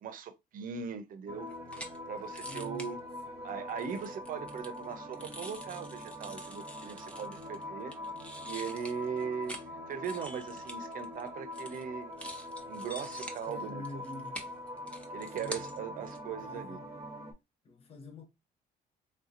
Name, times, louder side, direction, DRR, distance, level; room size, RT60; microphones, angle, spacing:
voice 1, 0.0-1.5 2.1-3.0 3.4-8.0 8.4-9.6 9.9-12.2 12.7-14.0 15.1-16.8, right 7 dB, 55° right, 0.7 m, -39 dB
sound 1, 1.3-17.3, left 1 dB, 15° right, 1.1 m, -43 dB
sound 2, 1.5-2.0 2.3-2.9 3.7-7.6 7.9-9.7 9.9-11.3 11.5-11.8 12.1-15.8 16.0-16.2, equal, 5° left, 0.8 m, -46 dB
voice 2, 2.4-3.0 3.3-3.6 13.5-14.5 15.4-15.7 16.4-16.9 17.6-18.3, left 2 dB, 35° left, 0.8 m, -47 dB
3.5 x 2.8 x 2.5 m
cardioid pair, 110°, 17 cm